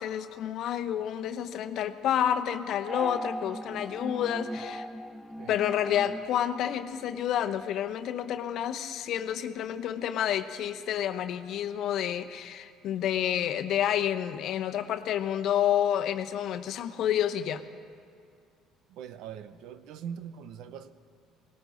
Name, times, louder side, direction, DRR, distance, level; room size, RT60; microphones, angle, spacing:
voice 1, 0.0-4.9 5.5-17.6, left 10 dB, 65° left, 8 dB, 0.8 m, -29 dB
sound 1, 2.8-7.4, equal, 5° left, 0.6 m, -39 dB
voice 2, 18.9-21.0, right 8 dB, 70° right, 12 dB, 0.8 m, -42 dB
19.0 x 18.0 x 3.9 m, 2.4 s
supercardioid pair, 75°, 0 cm